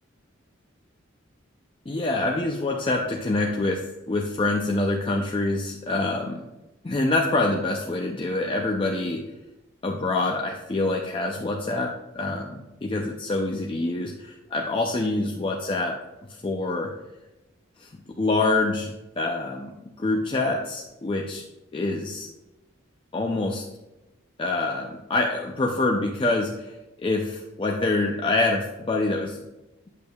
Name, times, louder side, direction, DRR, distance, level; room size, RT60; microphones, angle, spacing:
voice 1, 1.9-6.5 6.8-9.3 9.8-16.0 16.3-16.9 17.8-18.9 19.2-21.4 21.7-22.3 23.1-23.6 24.4-26.7 27.0-29.4, left 2 dB, 25° left, 1 dB, 0.5 m, -26 dB
8.3 x 6.8 x 2.3 m, 1.0 s
head